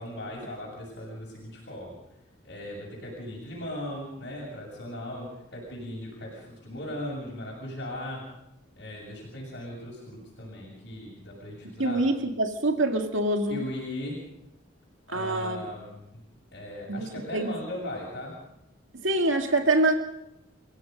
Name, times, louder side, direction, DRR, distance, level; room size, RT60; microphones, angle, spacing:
voice 1, 0.0-2.0 2.4-8.3 8.8-12.1 13.5-14.2 15.1-16.2 16.5-18.4, left 1 dB, 60° left, -4 dB, 7.3 m, -38 dB
voice 2, 11.8-13.6 15.1-15.6 16.9-17.5 19.0-19.9, right 2 dB, 75° right, 4 dB, 2.2 m, -25 dB
30.0 x 16.5 x 5.4 m, 0.86 s
head